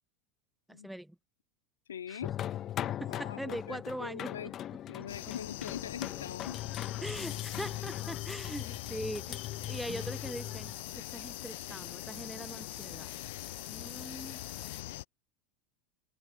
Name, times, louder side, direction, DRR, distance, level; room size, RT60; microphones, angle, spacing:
voice 1, 0.7-1.2 2.1-2.2 3.0-4.5 7.0-13.1 13.7-14.4, right 1 dB, ahead, 0.8 m, -42 dB
voice 2, 1.9-2.4 3.1-4.5 4.9-6.6, left 8 dB, 90° left, 1.9 m, -42 dB
sound 1, 2.2-14.8, left 11 dB, 40° left, 0.8 m, -41 dB
sound 2, 5.1-15.0, left 18 dB, 70° left, 0.5 m, -43 dB
open air
hypercardioid pair, 95°, 0 cm